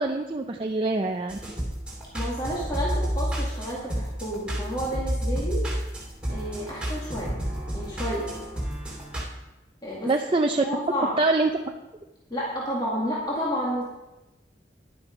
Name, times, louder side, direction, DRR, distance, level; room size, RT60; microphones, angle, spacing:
voice 1, 0.0-1.4 10.0-10.6 11.2-11.5, right 3 dB, 30° right, 3 dB, 0.5 m, -24 dB
sound 1, 1.3-9.2, equal, 5° right, 2.7 m, -30 dB
voice 2, 2.1-5.6 6.3-7.3 7.7-8.3 9.8-10.1 10.6-11.1 12.3-13.8, equal, 25° left, -5 dB, 2.1 m, -30 dB
11.0 x 8.6 x 5.1 m, 1.0 s
head